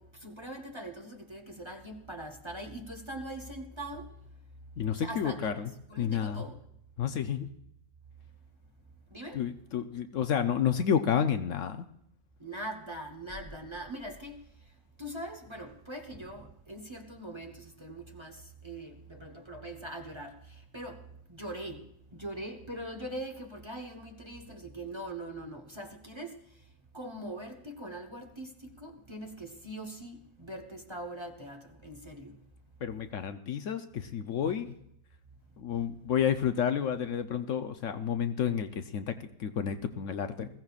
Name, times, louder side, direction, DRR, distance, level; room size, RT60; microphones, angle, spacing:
voice 1, 0.0-4.2 4.9-6.6 9.1-9.5 12.4-14.5 15.0-26.4 26.9-32.4, right 1 dB, 20° right, 1.0 m, -42 dB
voice 2, 4.8-5.7 6.0-6.4 7.0-7.5 9.3-11.9 32.8-34.8 35.6-40.5, left 8 dB, 65° left, 1.0 m, -30 dB
20.5 x 15.5 x 2.4 m
omnidirectional pair, 1.5 m